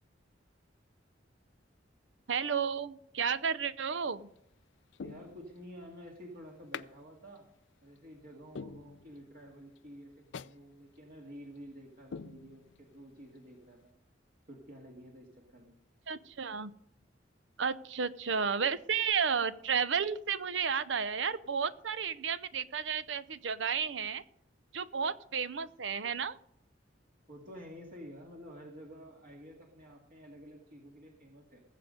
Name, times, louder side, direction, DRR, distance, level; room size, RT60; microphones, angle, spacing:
voice 1, 2.3-4.3 16.1-16.7 17.6-24.2 24.7-26.4, right 6 dB, 80° right, 15 dB, 0.7 m, -32 dB
sound 1, 4.0-4.4 4.9-5.8 6.7-6.9 7.4-7.5 8.0-8.1 8.6-9.4 9.8-9.9 10.3-10.6 11.0-11.1 11.6-11.7 12.1-13.0 13.4-13.5, left 6 dB, 75° left, 0.4 m, -45 dB
voice 2, 5.0-7.5 7.8-13.8 14.5-15.8 27.3-31.6, equal, 50° right, -1 dB, 2.0 m, -50 dB
19.0 x 7.7 x 5.2 m, 0.75 s
head